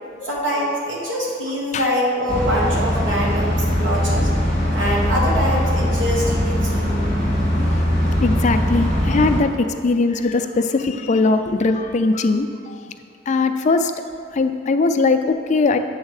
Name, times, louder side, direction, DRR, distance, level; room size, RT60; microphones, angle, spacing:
voice 1, 0.3-4.3 4.7-7.0, equal, 90° right, -5 dB, 1.5 m, -24 dB
sound 1, 2.3-9.4, equal, 40° right, 2.0 m, -20 dB
voice 2, 8.2-12.8 13.3-13.9 14.3-15.8, left 3 dB, 40° left, 7 dB, 0.4 m, -20 dB
8.4 x 3.6 x 6.4 m, 2.4 s
head